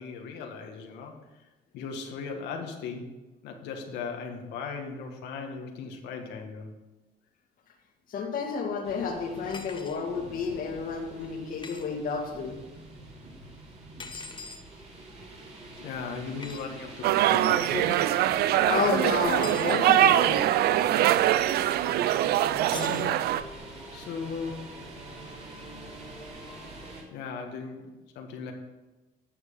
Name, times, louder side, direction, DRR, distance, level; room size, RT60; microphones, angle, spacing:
voice 1, 0.0-1.5 1.7-3.1 3.4-6.7 15.8-18.1 22.7-23.2 23.9-24.9 27.1-28.5, left 5 dB, 85° left, 3 dB, 1.7 m, -38 dB
voice 2, 8.1-12.6 18.7-20.4, left 5 dB, 55° left, 1 dB, 2.0 m, -30 dB
sound 1, 8.8-27.0, right 2 dB, 40° right, 3.0 m, -45 dB
sound 2, 9.5-10.0 11.6-11.9 14.0-14.6 16.4-16.7 19.3-19.8 22.7-23.1, left 4 dB, 30° left, 1.2 m, -41 dB
sound 3, 17.0-23.4, right 12 dB, 70° right, 0.5 m, -23 dB
11.0 x 7.2 x 5.6 m, 1.1 s
cardioid pair, 110°, 17 cm